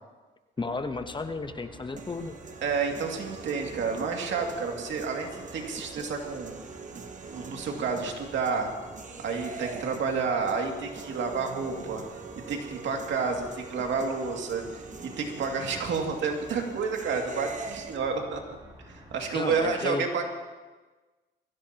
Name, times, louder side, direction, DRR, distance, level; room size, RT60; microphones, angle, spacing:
voice 1, 0.6-2.4 19.3-20.1, left 3 dB, 25° left, 9 dB, 1.0 m, -33 dB
sound 1, 0.6-19.8, right 1 dB, 20° right, 3.4 m, -50 dB
sound 2, 2.0-18.0, right 5 dB, 40° right, 1.3 m, -43 dB
voice 2, 2.6-6.5 7.3-8.7 9.2-12.0 12.5-18.4 18.9-20.3, right 5 dB, 70° right, 2 dB, 2.4 m, -30 dB
22.0 x 15.5 x 2.9 m, 1.3 s
cardioid pair, 90°, 20 cm